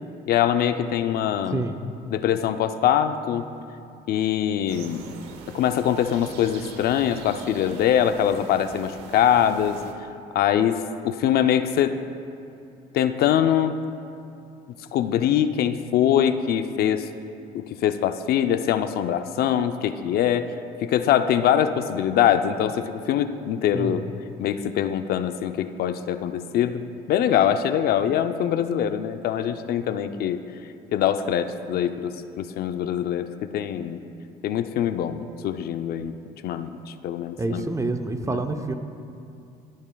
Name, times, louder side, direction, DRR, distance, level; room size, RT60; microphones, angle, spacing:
voice 1, 0.3-1.6 2.1-3.5 4.1-5.0 5.5-9.8 10.3-11.9 12.9-13.8 14.9-17.1 17.5-20.5 20.8-24.0 24.4-30.4 30.9-34.0 34.4-36.1 36.4-36.8 37.0-37.6 38.3-38.4, left 10 dB, 65° left, 9 dB, 0.5 m, -23 dB
sound 1, 4.7-9.9, right 5 dB, 85° right, 1.0 m, -42 dB
voice 2, 37.4-38.7, right 2 dB, 20° right, 7 dB, 0.6 m, -27 dB
17.5 x 10.5 x 2.3 m, 2.6 s
cardioid pair, 110°, 17 cm